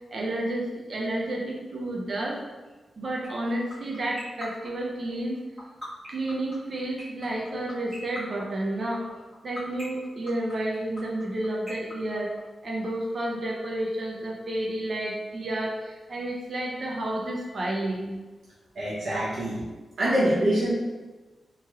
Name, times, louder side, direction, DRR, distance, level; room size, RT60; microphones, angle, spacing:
voice 1, 0.1-2.4 3.0-5.4 6.1-9.1 9.4-12.3 12.6-18.2, right 1 dB, 45° right, -2 dB, 0.6 m, -31 dB
sound 1, 3.2-12.9, left 1 dB, 10° right, 1.5 m, -40 dB
voice 2, 18.7-19.6 20.0-20.7, right 1 dB, 80° right, -8 dB, 0.8 m, -24 dB
3.1 x 2.9 x 2.3 m, 1.3 s
wide cardioid pair, 165°, 0 cm